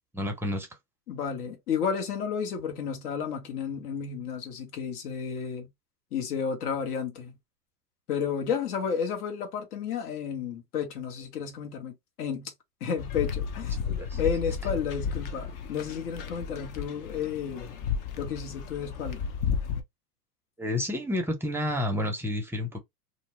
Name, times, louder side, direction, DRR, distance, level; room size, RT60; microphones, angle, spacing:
voice 1, 0.1-0.7 13.8-14.2 20.6-22.8, left 1 dB, 5° right, 0.6 m, -30 dB
voice 2, 1.1-5.7 6.1-7.4 8.1-12.5 12.8-13.8 14.2-17.7 18.2-19.3, left 7 dB, 65° left, 1.3 m, -32 dB
sound 1, 13.0-19.8, left 6 dB, 45° left, 0.7 m, -33 dB
2.7 x 2.0 x 3.1 m
hypercardioid pair, 105°, 48 cm